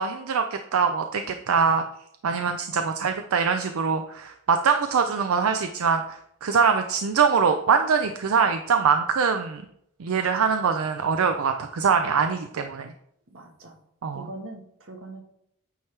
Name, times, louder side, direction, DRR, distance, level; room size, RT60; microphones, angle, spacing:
voice 1, 0.0-1.8 2.2-9.6 10.0-12.9 14.0-14.3, right 6 dB, 85° right, 7 dB, 0.5 m, -23 dB
voice 2, 10.1-10.5 13.3-13.7 14.1-15.2, right 2 dB, 70° right, 3 dB, 1.3 m, -42 dB
9.0 x 3.3 x 4.5 m, 0.72 s
head